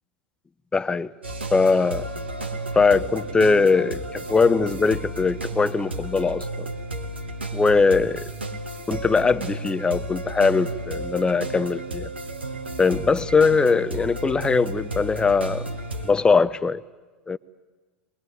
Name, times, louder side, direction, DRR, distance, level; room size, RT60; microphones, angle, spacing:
voice 1, 0.7-1.1 1.5-2.1 2.7-6.7 7.5-8.3 8.9-12.1 12.8-15.7 16.0-16.8 17.3-17.4, left 4 dB, 15° left, 17 dB, 0.7 m, -21 dB
sound 1, 1.2-16.1, right 1 dB, 85° right, 1.9 m, -33 dB
22.5 x 21.0 x 9.4 m, 1.4 s
figure-of-eight pair, 85°, 6 cm